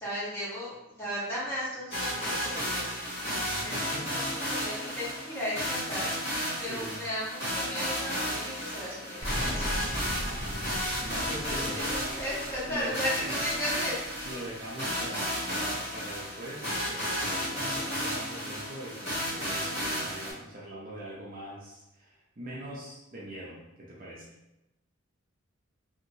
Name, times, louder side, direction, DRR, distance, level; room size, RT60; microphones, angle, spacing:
voice 1, 0.0-2.9 3.6-9.8 11.4-13.9, equal, 10° left, -10 dB, 1.1 m, -36 dB
sound 1, 1.9-20.3, equal, 30° left, 1.2 m, -33 dB
voice 2, 3.3-4.2 6.6-7.0 10.2-10.7 11.0-12.3 12.7-13.4 14.2-24.3, right 1 dB, 40° right, -5 dB, 0.5 m, -42 dB
Explosion, 9.2-14.6, equal, 50° left, 1.0 m, -38 dB
2.8 x 2.8 x 2.7 m, 0.91 s
head